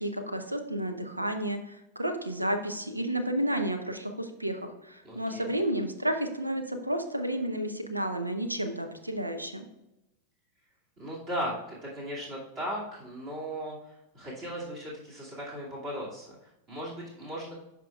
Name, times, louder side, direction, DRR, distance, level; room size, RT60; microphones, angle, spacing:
voice 1, 0.0-9.7, right 1 dB, 85° right, 7 dB, 0.8 m, -31 dB
voice 2, 5.0-5.5 11.0-17.6, equal, 35° right, -5 dB, 2.5 m, -37 dB
12.0 x 4.5 x 2.4 m, 0.93 s
figure-of-eight pair, 90°, 0 cm